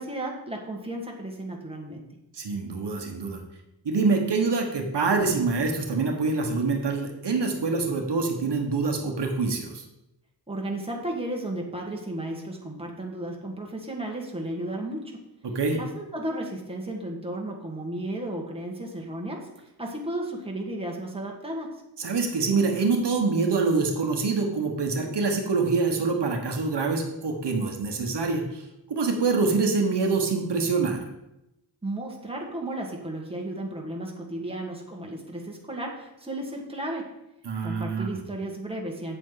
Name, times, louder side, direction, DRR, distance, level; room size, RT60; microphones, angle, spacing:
voice 1, 0.0-2.1 10.5-15.2 15.8-19.5 19.8-21.8 31.8-37.1 37.6-39.2, right 1 dB, 15° right, -1 dB, 1.8 m, -34 dB
voice 2, 2.3-3.4 3.8-9.8 15.4-15.8 22.0-28.6 28.9-31.0 37.4-38.1, right 4 dB, 75° right, 2 dB, 1.3 m, -25 dB
8.4 x 8.1 x 3.9 m, 0.89 s
wide cardioid pair, 125°, 41 cm